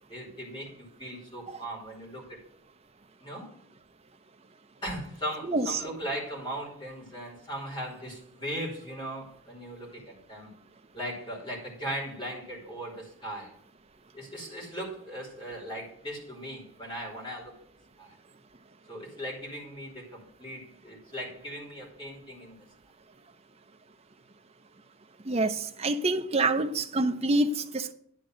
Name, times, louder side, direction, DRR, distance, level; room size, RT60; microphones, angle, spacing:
voice 1, 0.1-2.4 3.2-3.5 4.8-10.5 10.9-13.6 14.1-17.6 18.0-18.1 18.9-22.6, equal, 20° left, -4 dB, 2.6 m, -38 dB
voice 2, 5.4-5.8 25.3-27.9, right 2 dB, 30° right, 7 dB, 0.6 m, -27 dB
10.5 x 3.8 x 7.5 m, 0.64 s
head